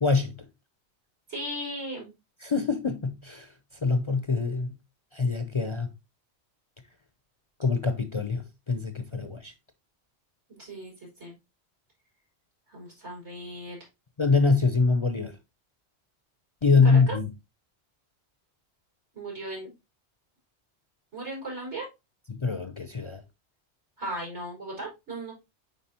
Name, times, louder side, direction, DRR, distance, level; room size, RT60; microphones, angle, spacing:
voice 1, 0.0-0.5 2.4-3.5 3.8-4.7 5.1-5.9 7.6-9.5 14.2-15.4 16.6-17.3 22.3-23.2, left 4 dB, 35° left, 0.5 m, -24 dB
voice 2, 1.3-2.1 9.2-9.3 10.6-10.9 11.2-11.3 12.7-13.8 16.8-17.2 19.1-19.7 21.1-21.9 24.0-25.3, right 1 dB, 85° right, 4.7 m, -36 dB
9.0 x 4.0 x 2.8 m
omnidirectional pair, 1.1 m